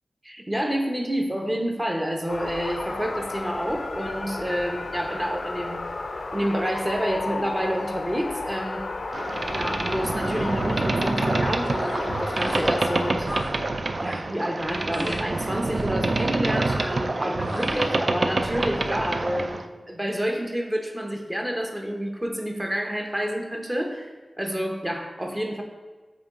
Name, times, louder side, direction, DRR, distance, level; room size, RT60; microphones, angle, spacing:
voice 1, 0.2-5.8 6.3-8.9 9.5-13.3 14.0-24.1 24.4-25.6, equal, 15° right, 2 dB, 0.8 m, -29 dB
sound 1, 2.3-13.1, left 3 dB, 65° left, 0.4 m, -33 dB
Boat Water vehicle, 9.1-19.7, right 2 dB, 50° right, 0.4 m, -27 dB
sound 2, 11.7-12.0 12.3-12.7 13.0-13.6 13.9-14.2 14.9-15.3 15.7-16.0 16.6-17.1 17.4-17.8, left 1 dB, 15° left, 0.5 m, -38 dB
8.5 x 3.0 x 3.7 m, 1.3 s
wide cardioid pair, 85°, 0 cm